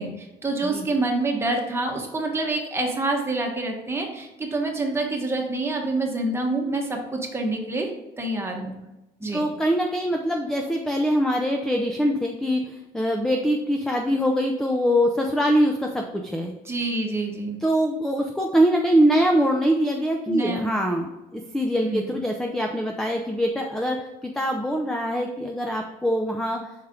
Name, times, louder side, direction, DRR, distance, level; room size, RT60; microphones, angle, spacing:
voice 1, 0.0-7.9 8.2-8.8 9.2-9.5 16.7-17.6 20.3-20.7 21.8-22.1, right 2 dB, 15° right, 1 dB, 1.4 m, -27 dB
voice 2, 0.6-1.0 9.3-16.5 17.6-26.6, equal, 5° left, 3 dB, 0.6 m, -23 dB
5.7 x 4.5 x 3.7 m, 1.0 s
cardioid pair, 110°, 17 cm